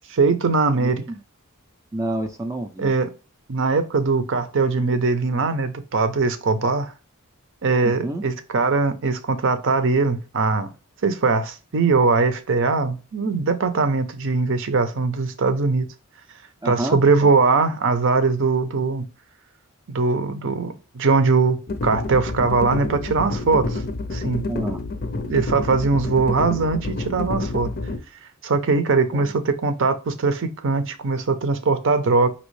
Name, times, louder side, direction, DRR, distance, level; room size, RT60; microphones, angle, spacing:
voice 1, 0.1-1.0 2.8-3.1 3.5-6.9 7.6-10.7 11.0-15.9 16.6-19.0 19.9-21.6 21.8-23.8 24.1-24.4 25.3-27.7 28.4-32.3, right 4 dB, 60° right, 0.6 m, -21 dB
voice 2, 1.9-2.9 7.8-8.2 16.6-17.3 24.5-24.8 29.1-29.3, right 1 dB, 15° right, 0.4 m, -28 dB
sound 1, 21.7-28.0, left 2 dB, 45° left, 0.5 m, -28 dB
5.2 x 2.9 x 3.1 m
head